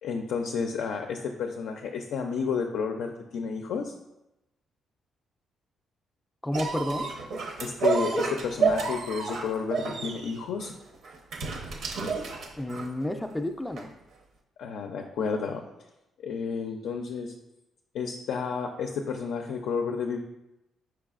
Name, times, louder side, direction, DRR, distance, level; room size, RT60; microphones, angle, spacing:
voice 1, 0.0-3.9 7.6-10.7 14.6-15.6 16.2-17.3 17.9-20.2, left 5 dB, 80° left, 4 dB, 0.4 m, -31 dB
voice 2, 6.4-7.1 12.5-13.9, left 1 dB, 5° left, 6 dB, 0.3 m, -31 dB
sound 1, 6.5-13.0 13.8-13.9, right 4 dB, 70° right, 0.7 m, -30 dB
4.8 x 4.5 x 2.4 m, 0.92 s
cardioid pair, 90°, 0 cm